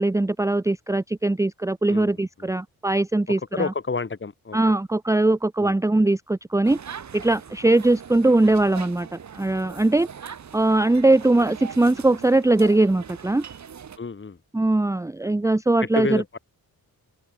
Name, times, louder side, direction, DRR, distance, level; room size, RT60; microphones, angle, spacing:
voice 1, 0.0-3.7 4.5-6.8 7.1-10.1 10.5-13.4 14.5-16.4, right 2 dB, 10° right, 0.7 m, -21 dB
voice 2, 3.3-4.6 5.6-5.7 14.0-14.4 15.8-16.4, left 4 dB, 30° left, 4.2 m, -29 dB
sound 1, 6.6-14.0, right 7 dB, 50° right, 1.7 m, -41 dB
open air
wide cardioid pair, 140°, 36 cm